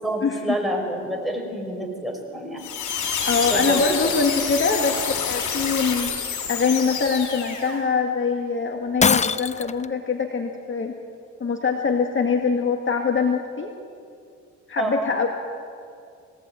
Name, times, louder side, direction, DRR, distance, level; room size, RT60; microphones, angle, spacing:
voice 1, 0.0-2.6 3.4-4.1 14.8-15.1, right 1 dB, ahead, 2 dB, 5.8 m, -28 dB
sound 1, 2.6-7.8, left 6 dB, 80° left, 4.8 m, -28 dB
voice 2, 3.3-6.1 6.5-10.9 11.4-13.7 14.7-15.3, left 5 dB, 40° left, 3 dB, 2.1 m, -23 dB
Shatter, 9.0-9.9, left 5 dB, 25° left, 0.6 m, -21 dB
22.5 x 18.5 x 9.0 m, 2.3 s
cardioid pair, 90°, 30 cm